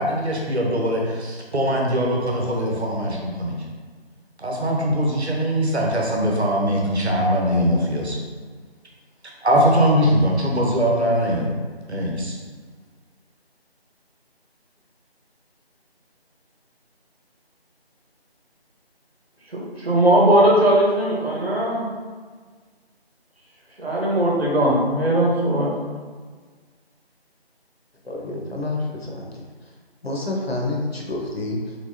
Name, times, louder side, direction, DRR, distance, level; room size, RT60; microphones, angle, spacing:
voice 1, 0.0-3.6 4.4-8.2 9.4-11.5 11.9-12.3, equal, 85° right, -1 dB, 1.0 m, -21 dB
voice 2, 19.5-21.9 23.8-25.7, right 1 dB, 70° right, -4 dB, 1.3 m, -19 dB
voice 3, 28.0-29.2 30.0-31.7, left 2 dB, 70° left, -2 dB, 0.9 m, -28 dB
3.4 x 3.1 x 2.8 m, 1.5 s
figure-of-eight pair, 170°, 32 cm